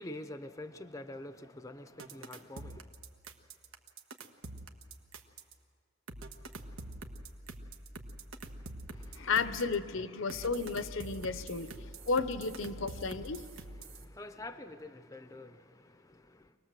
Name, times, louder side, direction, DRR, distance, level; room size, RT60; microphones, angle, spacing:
voice 1, 0.0-2.9 8.9-9.3 10.2-10.6 11.0-12.1 12.7-16.6, left 1 dB, 15° left, 0.6 m, -48 dB
sound 1, 2.0-5.5 6.1-9.8 10.3-14.0, right 2 dB, 85° right, 1.3 m, -45 dB
voice 2, 9.1-11.8 12.1-13.5, left 4 dB, 70° left, 0.8 m, -33 dB
24.5 x 19.0 x 7.5 m
head